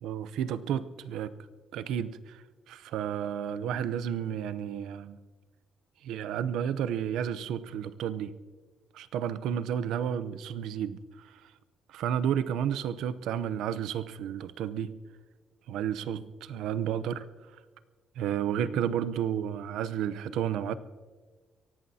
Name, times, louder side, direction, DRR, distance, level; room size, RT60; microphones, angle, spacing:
voice 1, 0.0-1.4 1.7-5.2 6.0-8.3 8.9-11.4 11.9-15.0 15.7-17.2 18.2-20.7, right 9 dB, 90° right, 14 dB, 0.7 m, -32 dB
23.5 x 17.0 x 2.8 m, 1.4 s
cardioid pair, 155°, 0 cm